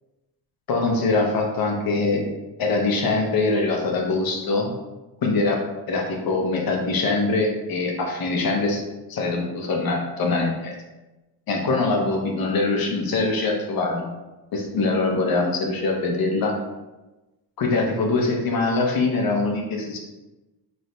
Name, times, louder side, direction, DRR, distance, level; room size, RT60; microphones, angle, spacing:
voice 1, 0.7-2.2 2.6-4.7 5.2-5.6 5.9-8.8 9.1-10.7 11.5-14.1 14.5-16.6 17.6-20.0, left 3 dB, 50° left, 0 dB, 0.9 m, -23 dB
3.2 x 2.6 x 4.3 m, 1.1 s
cardioid pair, 125°, 47 cm